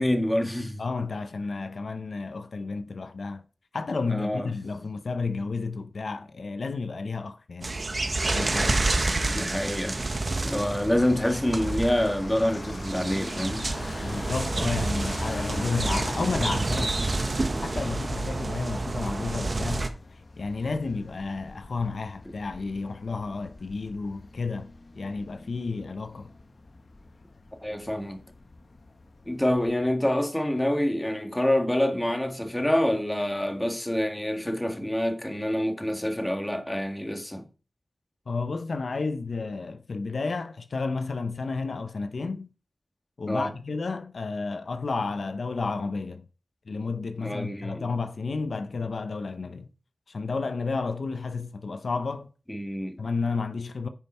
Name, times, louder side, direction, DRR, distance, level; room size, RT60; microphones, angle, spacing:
voice 1, 0.0-0.8 4.1-4.5 9.3-10.0 10.4-13.7 27.6-28.2 29.3-37.4 43.3-43.5 47.2-47.9 52.5-53.0, left 1 dB, 15° left, 1.8 m, -27 dB
voice 2, 0.8-3.4 3.7-7.8 8.3-8.9 14.0-17.3 17.6-20.0 20.4-26.3 38.3-42.5 43.2-46.3 46.7-49.7 50.1-52.3 53.0-53.9, left 4 dB, 80° left, 0.7 m, -31 dB
sound 1, 7.6-19.9, right 2 dB, 50° right, 1.1 m, -29 dB
sound 2, 10.0-29.8, left 2 dB, 65° left, 1.1 m, -43 dB
9.9 x 5.4 x 4.3 m
cardioid pair, 50°, 0 cm